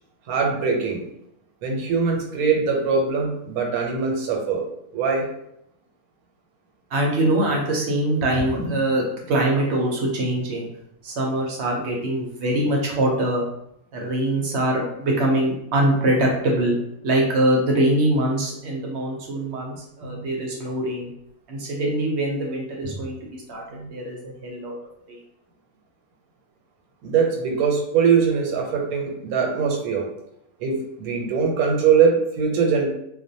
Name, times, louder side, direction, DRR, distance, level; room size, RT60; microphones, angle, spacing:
voice 1, 0.3-1.0 1.6-4.6 4.9-5.2 20.0-20.3 23.7-23.9 27.0-30.1 30.6-32.9, right 6 dB, 90° right, 1 dB, 1.1 m, -22 dB
voice 2, 6.9-10.7 11.0-13.4 13.9-16.8 17.0-21.1 21.5-23.6 23.9-24.7 25.1-25.2, right 1 dB, 65° right, -1 dB, 0.7 m, -23 dB
2.4 x 2.1 x 2.6 m, 0.77 s
omnidirectional pair, 1.5 m